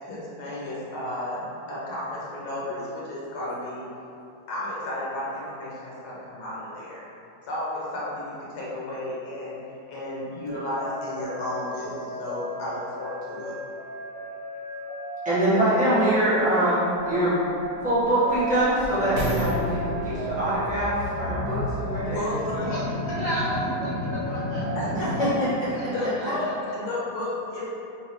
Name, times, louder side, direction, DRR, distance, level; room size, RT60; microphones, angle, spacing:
voice 1, 0.0-3.9 4.5-7.0 7.4-9.6 9.9-13.5 22.1-23.2 24.7-25.5 25.8-27.7, left 1 dB, 65° left, -7 dB, 1.4 m, -32 dB
sound 1, 10.5-25.4, right 1 dB, 55° right, 0.9 m, -35 dB
voice 2, 15.2-17.4 17.8-22.2 25.2-25.3, right 1 dB, 5° right, -14 dB, 1.1 m, -24 dB
industrial skipbin hit reverb front, 16.2-16.3 17.0-22.3 22.9-23.0, equal, 85° right, 1.9 m, -34 dB
sound 2, 18.9-25.8, left 1 dB, 85° left, 1.4 m, -33 dB
voice 3, 23.1-24.9 25.7-26.3, right 1 dB, 70° right, -10 dB, 0.5 m, -33 dB
3.9 x 2.8 x 3.0 m, 2.7 s
omnidirectional pair, 2.0 m